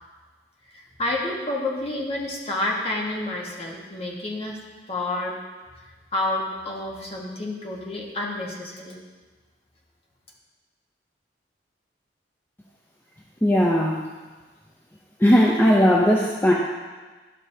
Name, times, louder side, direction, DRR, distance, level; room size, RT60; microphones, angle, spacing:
voice 1, 0.7-4.6 4.9-5.3 6.1-9.0, left 2 dB, 35° left, -2 dB, 1.3 m, -29 dB
voice 2, 13.4-14.1 15.2-16.5, equal, 10° left, -3 dB, 0.6 m, -18 dB
12.0 x 6.2 x 2.7 m, 1.3 s
head